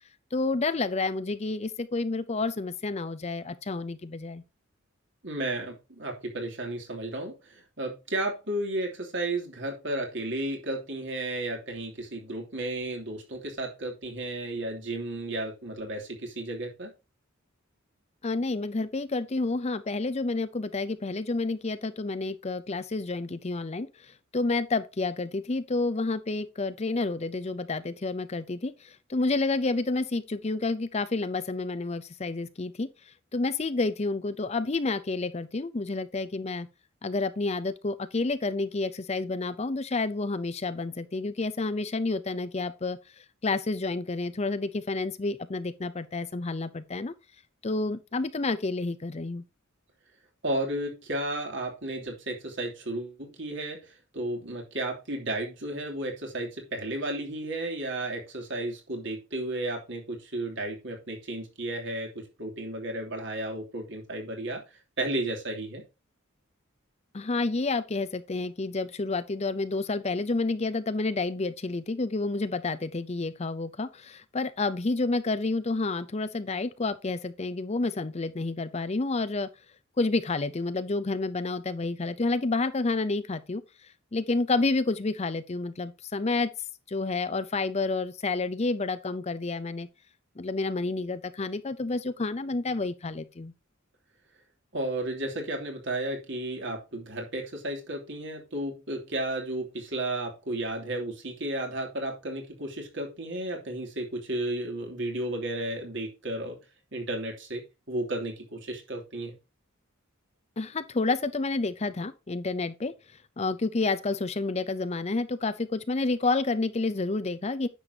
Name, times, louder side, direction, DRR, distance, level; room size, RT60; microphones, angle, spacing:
voice 1, 0.3-4.4 18.2-36.7 37.0-47.1 47.6-49.4 67.1-79.5 80.0-86.5 86.9-89.9 90.4-93.5 110.6-117.7, left 3 dB, 30° left, 0.5 m, -29 dB
voice 2, 5.2-16.9 50.4-53.9 54.1-64.6 65.0-65.8 94.7-106.6 106.9-107.6 107.9-109.3, right 1 dB, 60° right, 3.0 m, -33 dB
9.9 x 6.9 x 2.8 m
head